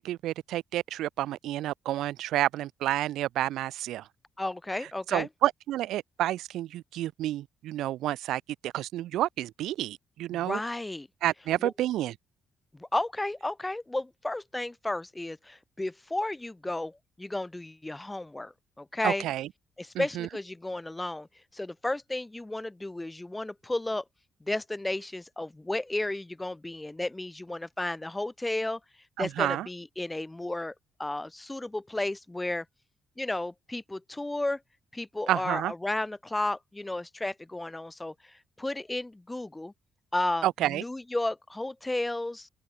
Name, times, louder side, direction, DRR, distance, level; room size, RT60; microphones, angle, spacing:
voice 1, 0.0-4.1 5.1-10.6 11.2-12.1 19.0-19.5 19.9-20.3 29.2-29.7 35.3-35.7 40.4-40.8, right 14 dB, 85° right, 0.8 m, -30 dB
voice 2, 4.4-5.3 10.3-11.1 11.6-11.7 12.7-19.2 19.8-21.3 21.5-24.0 24.4-28.8 29.2-30.7 31.0-32.6 33.2-34.6 34.9-39.7 40.1-42.5, left 2 dB, 15° left, 1.2 m, -33 dB
open air
cardioid pair, 90°, 0 cm